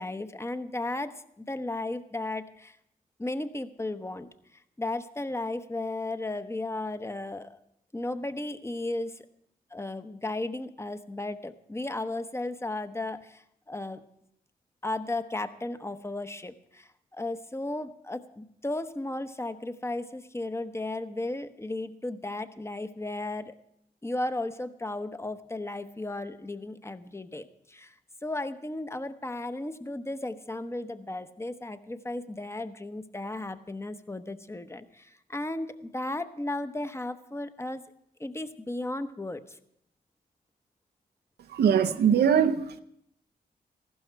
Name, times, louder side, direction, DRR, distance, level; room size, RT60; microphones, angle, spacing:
voice 1, 0.0-2.8 3.2-7.6 7.9-9.2 9.7-14.0 14.8-23.5 24.0-28.0 28.2-37.8 38.2-39.6, left 2 dB, 15° left, 11 dB, 0.9 m, -35 dB
voice 2, 41.5-42.8, right 8 dB, 90° right, 9 dB, 0.6 m, -22 dB
15.0 x 12.0 x 4.5 m, 0.74 s
cardioid pair, 55°, 16 cm